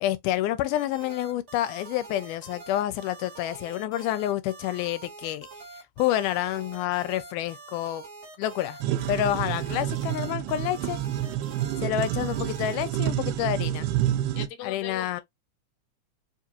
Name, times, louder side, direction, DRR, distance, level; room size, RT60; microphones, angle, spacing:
voice 1, 0.0-5.5 6.0-8.0 8.4-8.8 9.1-11.0 11.8-13.9 14.6-15.2, left 13 dB, 85° left, 2.1 m, -28 dB
sound 1, 0.7-12.8, right 4 dB, 50° right, 0.8 m, -45 dB
sound 2, 8.8-14.5, right 12 dB, 90° right, 2.1 m, -28 dB
voice 2, 14.3-15.2, left 9 dB, 65° left, 1.7 m, -39 dB
5.0 x 2.4 x 2.8 m
omnidirectional pair, 3.5 m